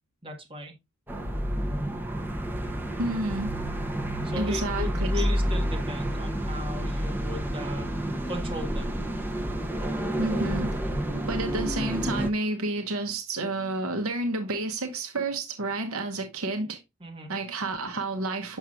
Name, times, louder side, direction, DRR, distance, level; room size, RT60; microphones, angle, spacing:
voice 1, 0.2-0.7 4.2-7.9 8.3-9.0 17.0-17.3, left 1 dB, 25° right, 1.6 m, -36 dB
sound 1, 1.1-12.3, equal, 10° right, 0.7 m, -29 dB
voice 2, 3.0-3.5 4.4-5.2 10.2-10.7 11.3-16.8 17.3-18.6, right 2 dB, 65° right, 0.9 m, -30 dB
7.2 x 5.8 x 2.4 m
head